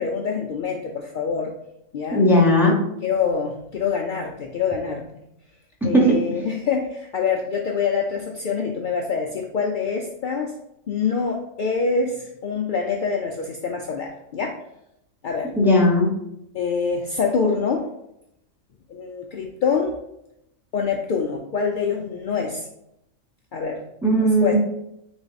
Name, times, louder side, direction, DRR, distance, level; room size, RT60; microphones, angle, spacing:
voice 1, 0.0-1.5 1.9-2.2 3.0-5.2 5.8-10.5 10.9-14.6 15.2-15.5 16.5-17.8 18.9-20.0 20.7-22.7 23.5-23.8 24.2-24.5, left 5 dB, 70° left, 1 dB, 0.4 m, -25 dB
voice 2, 2.1-2.8 5.9-6.0 6.3-6.4 15.6-16.1 24.0-24.5, left 1 dB, ahead, -2 dB, 0.8 m, -17 dB
3.9 x 3.4 x 4.0 m, 0.82 s
omnidirectional pair, 1.4 m